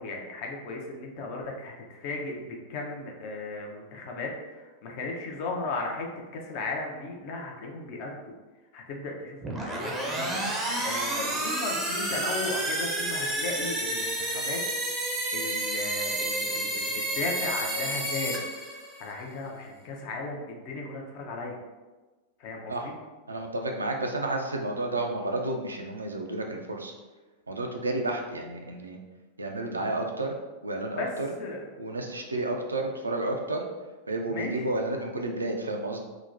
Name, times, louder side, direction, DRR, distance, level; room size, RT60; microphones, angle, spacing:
voice 1, 0.0-6.1 6.3-8.3 8.7-10.4 10.8-14.9 15.3-18.4 19.0-21.6 22.4-23.0 29.8-29.9 30.9-31.1 31.4-31.6 34.3-34.7, left 3 dB, 45° left, 0 dB, 0.5 m, -36 dB
sound 1, 9.4-19.1, right 1 dB, 10° right, 0.5 m, -30 dB
voice 2, 23.3-26.9 27.5-29.0 29.4-30.3 30.6-31.3 31.8-33.7 34.1-36.0, right 2 dB, 75° right, 2 dB, 0.3 m, -31 dB
2.8 x 2.1 x 2.5 m, 1.2 s
figure-of-eight pair, 90°, 0 cm